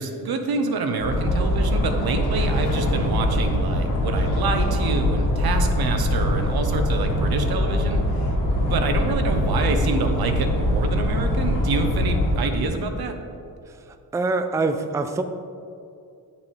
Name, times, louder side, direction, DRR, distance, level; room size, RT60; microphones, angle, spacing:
voice 1, 0.0-8.3 8.6-13.2, right 4 dB, 75° right, 6 dB, 0.9 m, -27 dB
sound 1, 1.0-12.3, left 1 dB, 60° left, 1.8 m, -23 dB
voice 2, 14.1-15.2, right 3 dB, 10° right, 8 dB, 0.4 m, -24 dB
9.3 x 7.0 x 3.3 m, 2.5 s
cardioid pair, 90°, 37 cm